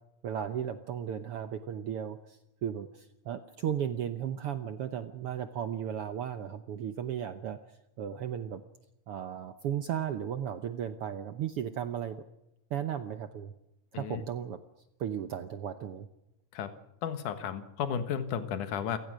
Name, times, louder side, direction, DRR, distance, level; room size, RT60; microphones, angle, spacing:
voice 1, 0.2-7.6 8.0-8.6 9.1-12.2 12.7-13.5 13.9-14.6 15.0-16.1, right 9 dB, 75° right, 9 dB, 1.3 m, -35 dB
voice 2, 17.0-19.0, left 8 dB, 70° left, 9 dB, 2.9 m, -33 dB
29.0 x 17.5 x 6.3 m, 0.89 s
omnidirectional pair, 3.8 m